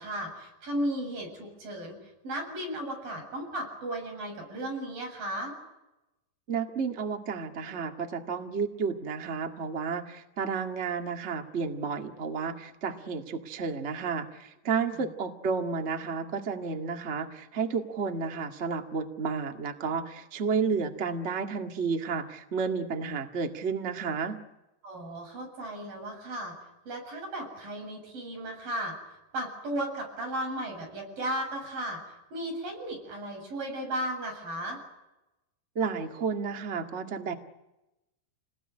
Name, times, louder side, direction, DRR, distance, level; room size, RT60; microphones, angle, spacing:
voice 1, 0.0-2.0 2.2-5.5 14.9-15.1 24.8-26.5 26.9-29.0 29.3-32.0 32.3-34.8, right 1 dB, 55° right, 1 dB, 9.3 m, -35 dB
voice 2, 6.5-24.4 35.7-37.3, right 5 dB, 75° right, 4 dB, 0.6 m, -31 dB
29.0 x 20.0 x 9.9 m, 0.97 s
omnidirectional pair, 4.9 m